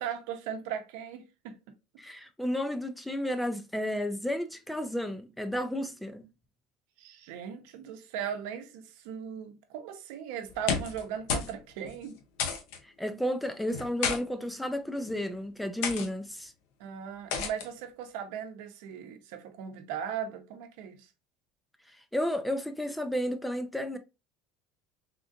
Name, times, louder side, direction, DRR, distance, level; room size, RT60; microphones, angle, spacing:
voice 1, 0.0-1.6 7.0-12.2 16.8-21.1, right 8 dB, 75° right, 0.7 m, -38 dB
voice 2, 2.0-6.3 12.8-16.5 21.9-24.0, equal, 5° left, 0.3 m, -32 dB
sound 1, 10.5-11.0 11.3-11.6 11.8-11.9 12.4-12.8 13.7-14.2 15.0-15.2 15.8-16.1 17.3-17.7, left 6 dB, 75° left, 0.7 m, -31 dB
3.6 x 2.4 x 2.5 m
cardioid pair, 145°, 0 cm